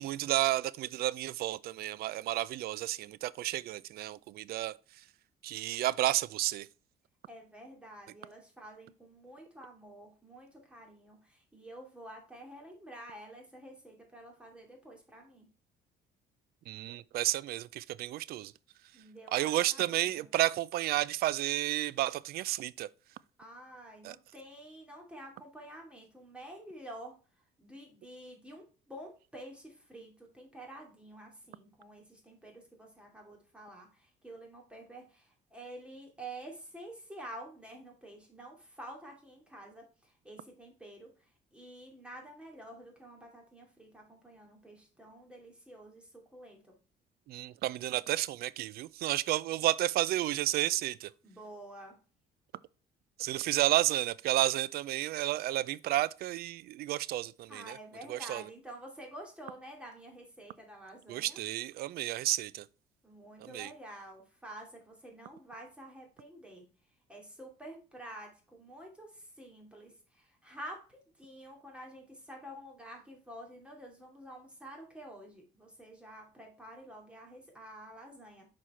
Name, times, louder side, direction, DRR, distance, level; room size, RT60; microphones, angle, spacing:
voice 1, 0.0-5.0 5.4-6.7 16.7-18.5 19.3-22.9 24.0-24.2 47.3-51.1 53.2-57.8 58.1-58.4 61.1-62.7 63.4-63.7, right 15 dB, 65° right, 0.4 m, -31 dB
voice 2, 7.3-15.5 18.9-20.3 23.4-27.2 27.6-46.7 51.2-52.0 57.5-61.4 63.0-66.7 67.1-78.5, right 1 dB, 5° right, 2.5 m, -49 dB
6.3 x 4.2 x 4.3 m
cardioid pair, 110°, 17 cm